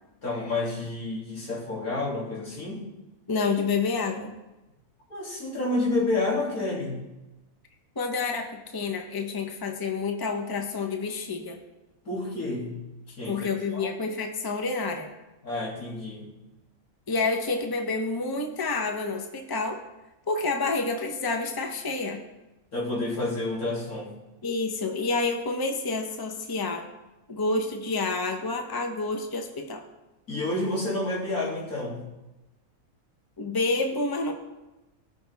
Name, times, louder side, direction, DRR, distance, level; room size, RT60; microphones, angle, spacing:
voice 1, 0.2-2.8 5.1-7.1 12.1-12.8 13.1-13.9 15.4-16.3 22.7-24.1 30.3-32.0, left 2 dB, 90° left, -5 dB, 3.5 m, -29 dB
voice 2, 3.3-4.3 8.0-11.6 13.3-15.1 17.1-19.8 20.3-22.2 24.4-26.8 27.3-29.8 33.4-34.3, left 3 dB, 20° left, 4 dB, 0.9 m, -28 dB
18.0 x 6.3 x 3.6 m, 1.0 s
omnidirectional pair, 1.5 m